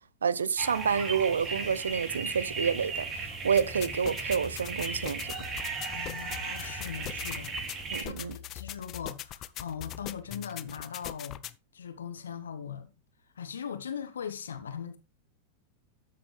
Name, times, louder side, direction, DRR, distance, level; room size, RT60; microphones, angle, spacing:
voice 1, 0.2-3.1 3.4-5.3 7.9-8.3, right 6 dB, 70° right, 0.6 m, -28 dB
sound 1, 0.6-8.0, right 4 dB, 30° right, 3.6 m, -36 dB
sound 2, 3.6-11.5, left 13 dB, 35° left, 0.7 m, -41 dB
voice 2, 5.9-7.6 8.0-11.4 11.7-12.9 13.3-15.0, left 7 dB, 70° left, 1.3 m, -40 dB
13.0 x 7.6 x 3.4 m
figure-of-eight pair, 90°, 0 cm